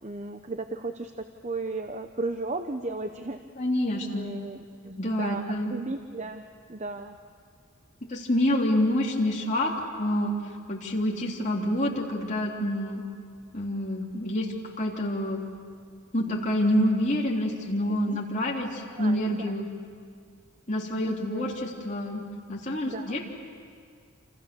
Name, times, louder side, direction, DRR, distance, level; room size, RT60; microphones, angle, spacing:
voice 1, 0.0-3.4 4.1-7.2 18.1-18.2 19.0-19.5 21.0-21.5 22.8-23.1, right 2 dB, 30° right, 7 dB, 0.7 m, -35 dB
voice 2, 3.6-4.3 5.0-5.7 8.1-9.7 10.0-10.4 10.7-13.0 13.5-15.4 16.1-19.7 20.7-22.2 22.5-23.2, left 1 dB, 35° left, -2 dB, 3.4 m, -27 dB
28.0 x 27.5 x 7.0 m, 2.2 s
head